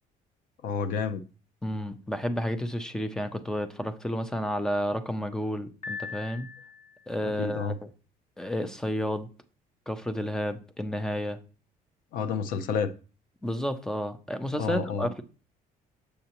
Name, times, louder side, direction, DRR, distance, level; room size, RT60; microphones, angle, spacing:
voice 1, 0.6-1.2 7.2-7.8 12.1-12.9 14.6-15.1, left 6 dB, 65° left, 0.6 m, -30 dB
voice 2, 1.6-6.5 7.1-7.9 8.4-9.3 9.9-11.4 13.4-15.2, equal, 5° left, 0.4 m, -31 dB
Piano, 5.8-7.1, left 5 dB, 40° left, 1.3 m, -40 dB
6.8 x 6.5 x 2.9 m
cardioid pair, 175°, 16 cm